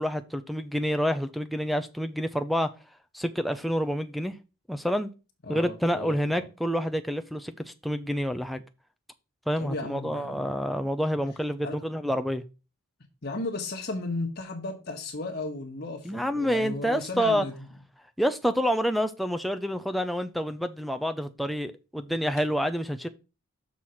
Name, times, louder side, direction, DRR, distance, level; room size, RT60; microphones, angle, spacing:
voice 1, 0.0-2.7 3.1-4.3 4.7-5.1 5.5-7.5 7.8-8.6 9.5-12.4 16.1-17.5 18.2-23.1, equal, ahead, 0.4 m, -28 dB
voice 2, 5.5-6.5 9.6-10.6 11.6-11.8 13.2-17.5, left 2 dB, 50° left, 1.3 m, -35 dB
6.5 x 4.3 x 5.7 m
head